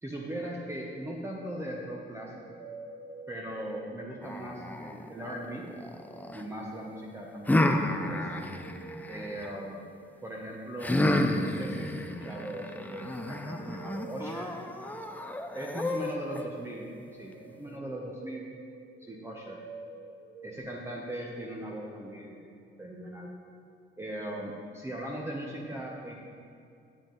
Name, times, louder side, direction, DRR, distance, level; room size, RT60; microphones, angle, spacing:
voice 1, 0.0-2.6 3.3-5.7 6.3-8.3 9.1-9.8 10.2-11.0 11.3-14.5 15.5-18.4 19.0-19.6 20.4-22.5 22.8-23.3 24.0-26.1, right 1 dB, 15° right, -2 dB, 0.9 m, -39 dB
sound 1, 2.2-4.6 4.9-20.6, right 4 dB, 70° right, 1.0 m, -49 dB
sound 2, 4.2-6.4 7.5-9.5 10.8-16.4, left 1 dB, 10° left, 0.5 m, -31 dB
9.8 x 7.2 x 4.0 m, 2.4 s
cardioid pair, 90°, 20 cm